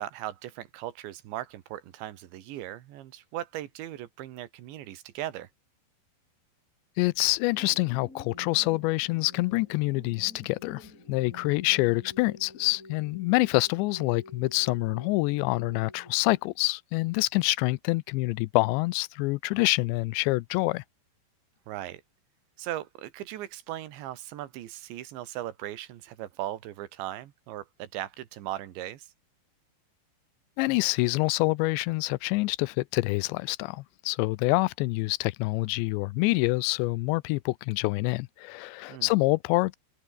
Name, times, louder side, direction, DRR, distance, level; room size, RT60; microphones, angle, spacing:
voice 1, 0.0-5.5 21.7-22.0 22.6-29.1 38.9-39.1, right 13 dB, 85° right, 3.9 m, -38 dB
voice 2, 7.0-20.8 30.6-39.8, left 23 dB, 85° left, 2.9 m, -26 dB
sound 1, 7.4-16.4, left 2 dB, 20° left, 6.3 m, -49 dB
omnidirectional pair, 5.0 m